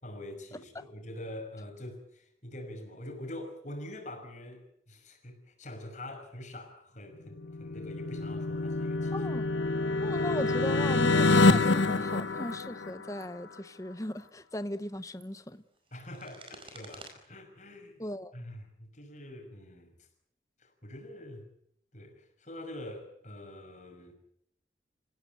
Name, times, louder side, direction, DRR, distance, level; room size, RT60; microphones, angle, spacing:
voice 1, 0.0-9.2 9.9-10.1 15.9-18.0 18.3-19.9 20.6-21.5 21.9-24.1, left 1 dB, 40° left, 5.9 m, -45 dB
sound 1, 7.4-13.2, left 3 dB, 85° left, 1.1 m, -26 dB
voice 2, 9.1-9.5 10.0-15.6 18.0-18.3, left 1 dB, 15° left, 1.0 m, -37 dB
sound 2, 11.9-12.0 12.4-12.7 13.0-13.3 14.0-14.3 14.9-17.1, right 3 dB, 30° right, 4.9 m, -52 dB
30.0 x 16.5 x 9.1 m
head